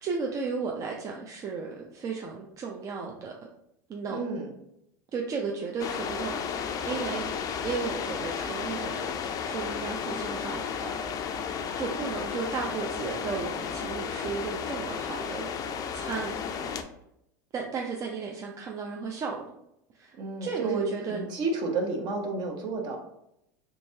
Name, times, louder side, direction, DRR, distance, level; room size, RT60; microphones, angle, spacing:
voice 1, 0.0-3.5 3.9-4.2 5.1-11.0 11.7-15.6 15.9-16.8 17.5-19.4 19.9-21.3, right 5 dB, 35° right, 0 dB, 0.5 m, -35 dB
voice 2, 4.1-4.5 20.2-23.0, right 3 dB, 50° right, 3 dB, 0.9 m, -31 dB
sound 1, 5.8-16.8, left 7 dB, 40° left, 0.4 m, -33 dB
3.4 x 3.0 x 2.7 m, 0.80 s
hypercardioid pair, 95°, 10 cm